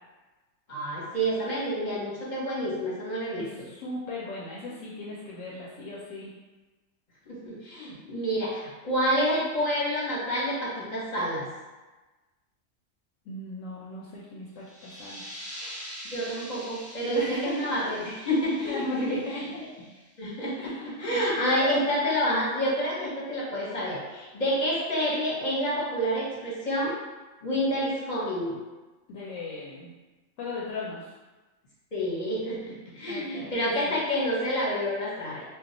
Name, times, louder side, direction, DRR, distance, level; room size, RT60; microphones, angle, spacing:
voice 1, 0.7-3.7 7.3-11.5 16.1-19.0 20.2-26.9 27.4-28.6 31.9-35.4, equal, 40° left, -6 dB, 0.8 m, -28 dB
voice 2, 3.4-6.3 13.3-15.3 17.1-17.7 18.6-19.6 20.6-21.2 29.1-29.9 30.4-31.1 33.1-33.9, left 2 dB, 75° left, -5 dB, 0.9 m, -37 dB
sound 1, 14.6-20.0, equal, 10° right, 0.5 m, -44 dB
2.3 x 2.3 x 3.9 m, 1.2 s
omnidirectional pair, 1.4 m